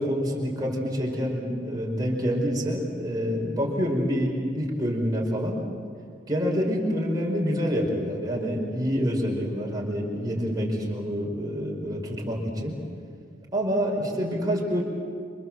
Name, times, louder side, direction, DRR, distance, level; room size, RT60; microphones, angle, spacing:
voice 1, 0.0-5.6 6.3-12.7 13.5-14.8, equal, 20° right, -2 dB, 5.3 m, -27 dB
28.5 x 26.0 x 7.7 m, 2.4 s
head